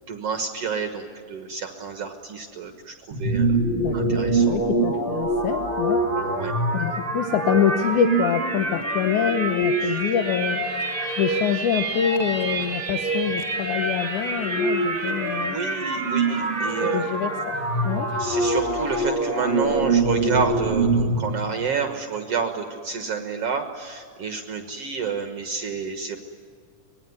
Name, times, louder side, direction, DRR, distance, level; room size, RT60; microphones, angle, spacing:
voice 1, 0.1-3.6 3.9-4.6 6.1-7.0 9.8-10.1 15.4-17.2 18.2-26.2, right 5 dB, 55° right, 6 dB, 2.1 m, -30 dB
sound 1, 3.1-21.3, right 2 dB, 20° right, 3.4 m, -25 dB
voice 2, 3.7-6.0 6.7-10.6 11.2-15.6 16.3-16.4 16.8-17.6 17.8-18.1, left 9 dB, 75° left, 8 dB, 2.3 m, -25 dB
sound 2, 10.2-19.7, left 2 dB, 50° left, 9.0 m, -44 dB
25.0 x 21.0 x 9.5 m, 2.3 s
omnidirectional pair, 3.7 m